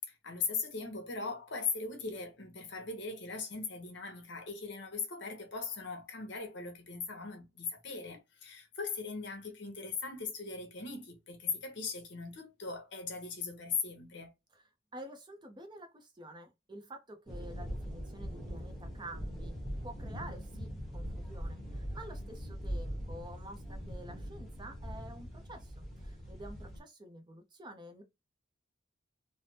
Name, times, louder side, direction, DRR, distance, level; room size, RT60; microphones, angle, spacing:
voice 1, 0.1-14.3, left 5 dB, 65° left, 1.0 m, -39 dB
voice 2, 14.9-19.6 19.8-28.0, right 1 dB, 25° right, 0.6 m, -49 dB
sound 1, 17.3-26.8, equal, ahead, 1.0 m, -41 dB
3.3 x 2.0 x 2.7 m
head